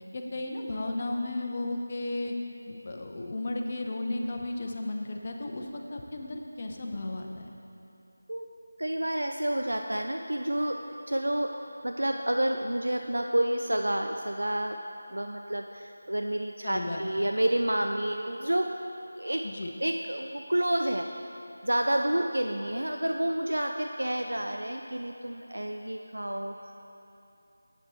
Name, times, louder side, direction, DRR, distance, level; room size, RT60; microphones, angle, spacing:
voice 1, 0.1-2.3 2.7-7.5 16.6-17.3 19.4-19.7, left 2 dB, 35° left, 2 dB, 0.7 m, -34 dB
voice 2, 8.8-11.5 11.8-14.8 15.1-18.7 19.2-19.5 19.8-21.1 21.6-26.6, right 1 dB, 70° right, 4 dB, 0.4 m, -29 dB
7.9 x 7.7 x 4.2 m, 2.8 s
figure-of-eight pair, 165°, 0 cm